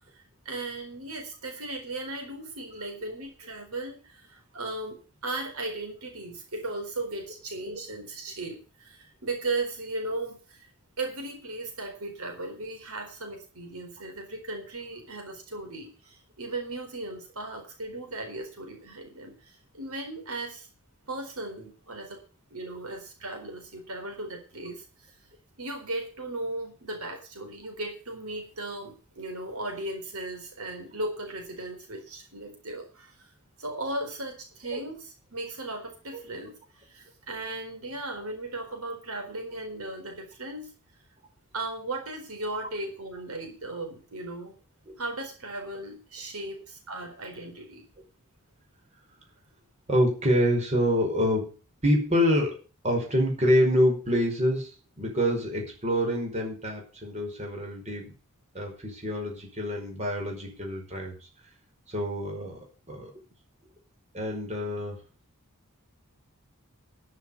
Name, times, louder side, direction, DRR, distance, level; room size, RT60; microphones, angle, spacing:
voice 1, 0.1-10.7 11.0-20.7 21.1-22.2 22.5-25.1 25.6-33.2 33.6-40.7 41.5-44.5 45.0-47.8, right 2 dB, 75° right, 3 dB, 4.4 m, -37 dB
voice 2, 49.9-51.5 51.8-52.6 52.8-58.1 58.5-61.1 61.9-62.6 62.9-63.1 64.1-65.0, equal, 30° right, 1 dB, 5.4 m, -26 dB
13.5 x 7.5 x 7.1 m, 0.36 s
head